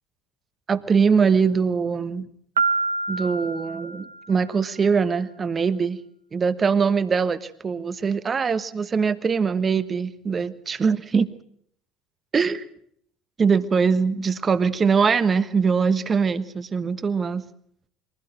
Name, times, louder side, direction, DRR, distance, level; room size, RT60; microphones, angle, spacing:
voice 1, 0.7-2.3 3.1-6.0 6.3-11.3 12.3-12.6 13.4-17.4, right 5 dB, 30° right, 14 dB, 1.2 m, -22 dB
Piano, 2.6-4.5, right 3 dB, 80° right, 1.1 m, -26 dB
23.0 x 16.5 x 7.7 m, 0.67 s
figure-of-eight pair, 65°, 0 cm